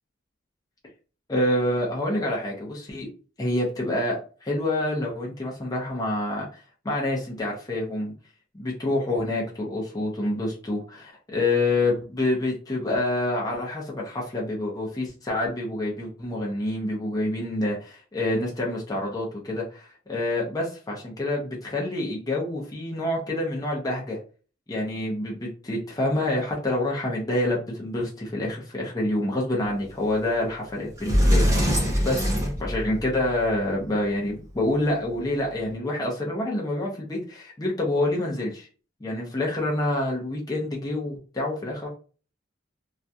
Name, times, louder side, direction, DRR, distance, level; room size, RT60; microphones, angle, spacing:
voice 1, 1.3-3.1 3.4-4.2 4.4-6.6 6.8-8.1 8.6-24.2 24.7-31.7 32.0-32.3 32.6-38.7 39.0-41.9, left 1 dB, 20° left, -3 dB, 0.5 m, -27 dB
Sliding door, 30.5-30.6 31.0-33.3, equal, 15° right, 0.8 m, -22 dB
2.4 x 2.2 x 2.6 m, 0.37 s
head